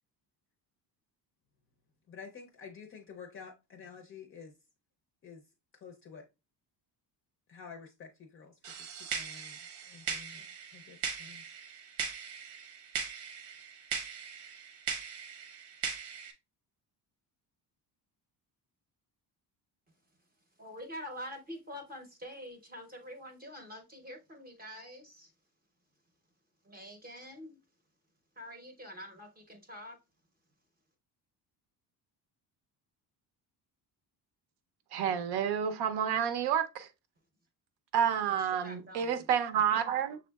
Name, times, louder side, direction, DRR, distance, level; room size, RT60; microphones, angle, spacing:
voice 1, 2.1-4.5 5.2-5.4 5.8-6.3 7.5-8.9 9.1-9.6 9.9-11.4, left 6 dB, 35° left, 0.5 m, -50 dB
sound 1, 8.6-16.3, right 7 dB, 85° right, 1.1 m, -40 dB
voice 2, 20.6-25.3 26.6-27.6 28.4-30.0 38.4-39.1, equal, 25° right, 0.7 m, -46 dB
voice 3, 34.9-36.9 37.9-40.2, right 8 dB, 70° right, 0.7 m, -29 dB
6.3 x 3.6 x 2.2 m
cardioid pair, 170°, 40 cm